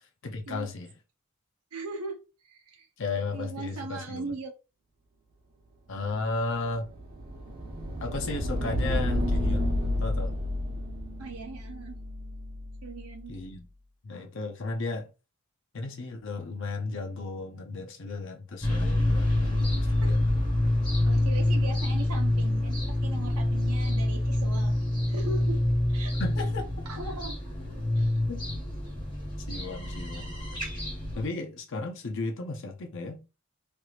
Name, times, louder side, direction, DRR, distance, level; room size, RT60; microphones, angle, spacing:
voice 1, 0.2-0.9 3.0-4.3 5.9-6.9 8.0-9.7 10.0-10.3 13.3-13.6 14.0-15.1 15.7-20.2 26.2-26.6 28.3-28.4 29.5-30.4 31.2-33.2, left 3 dB, 55° left, 0.6 m, -34 dB
voice 2, 1.7-2.2 2.4-2.9 3.3-4.5 11.2-12.0 12.8-13.4 20.0-20.2 21.0-25.6 25.9-26.1 26.9-27.4 28.0-28.2, right 3 dB, 85° right, 0.7 m, -39 dB
sound 1, 6.7-13.1, left 1 dB, 40° right, 1.1 m, -31 dB
sound 2, 18.6-31.3, left 1 dB, 20° left, 1.2 m, -27 dB
3.3 x 3.0 x 2.4 m
head